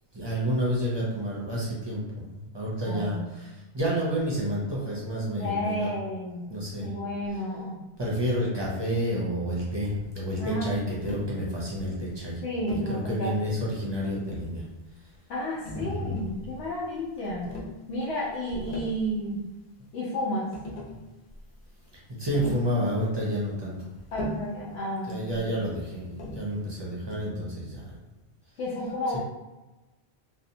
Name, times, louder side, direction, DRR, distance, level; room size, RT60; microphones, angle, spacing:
voice 1, 0.1-5.9 6.5-6.9 8.0-12.4 12.9-14.6 15.7-16.3 22.2-23.8 25.1-28.0, equal, 35° right, -5 dB, 0.4 m, -30 dB
voice 2, 2.8-3.3 5.4-6.4 6.8-7.8 10.4-10.7 12.4-13.3 15.3-17.5 17.9-19.4 19.9-20.5 24.1-25.5 28.6-29.2, equal, 90° left, -7 dB, 0.9 m, -32 dB
Tap, 11.0-11.3 12.7-13.0 14.0-14.6 15.6-16.4 17.4-17.8 18.5-19.0 20.2-20.3 20.5-21.0 22.3-22.7 24.1-24.6 26.2-26.5, left 1 dB, 55° left, 0.8 m, -37 dB
2.7 x 2.0 x 2.6 m, 1.1 s
omnidirectional pair, 1.1 m